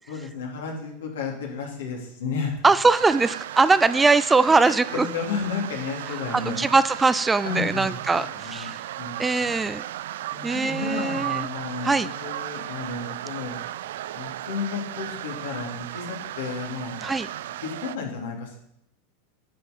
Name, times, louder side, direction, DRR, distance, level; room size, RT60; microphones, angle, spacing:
voice 1, 0.1-2.6 4.5-6.7 7.4-8.7 9.0-9.6 10.3-13.6 14.1-17.1 17.6-18.6, left 5 dB, 85° left, 0 dB, 3.0 m, -32 dB
voice 2, 2.6-5.1 6.1-8.8 9.2-9.9 10.4-11.5 11.8-12.1 17.0-17.3, right 3 dB, 15° right, 15 dB, 0.5 m, -21 dB
sound 1, 2.9-18.0, right 13 dB, 75° right, 0.3 m, -35 dB
10.0 x 7.2 x 5.3 m, 0.76 s
hypercardioid pair, 110°, 0 cm